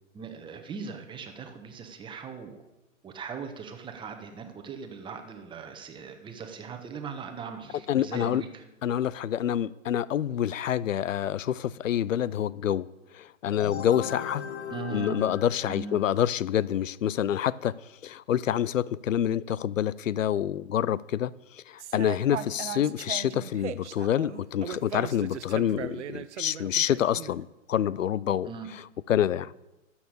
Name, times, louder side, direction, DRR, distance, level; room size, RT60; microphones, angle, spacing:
voice 1, 0.1-2.6 3.0-8.6 14.7-15.3 15.7-16.0 28.5-28.7, right 5 dB, 10° right, 5 dB, 1.2 m, -39 dB
voice 2, 7.9-8.4 8.8-12.9 13.1-14.4 14.9-17.8 18.0-28.8 29.1-29.7, left 10 dB, 70° left, 21 dB, 0.6 m, -27 dB
sound 1, 13.5-16.2, left 8 dB, 55° left, 1.4 m, -37 dB
sound 2, 21.8-27.3, right 10 dB, 60° right, 0.9 m, -38 dB
12.5 x 7.2 x 8.4 m, 1.0 s
figure-of-eight pair, 120°, 40 cm